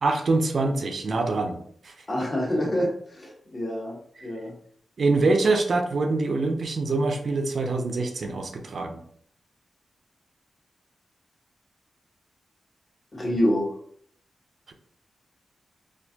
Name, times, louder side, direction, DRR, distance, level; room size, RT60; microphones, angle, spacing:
voice 1, 0.0-1.6 1.8-1.9 4.2-4.3 5.0-9.0, right 3 dB, 55° right, 3 dB, 0.5 m, -24 dB
voice 2, 2.1-4.5 13.1-13.7, equal, 30° left, -3 dB, 1.4 m, -27 dB
4.3 x 2.5 x 2.8 m, 0.63 s
wide cardioid pair, 110°, 0 cm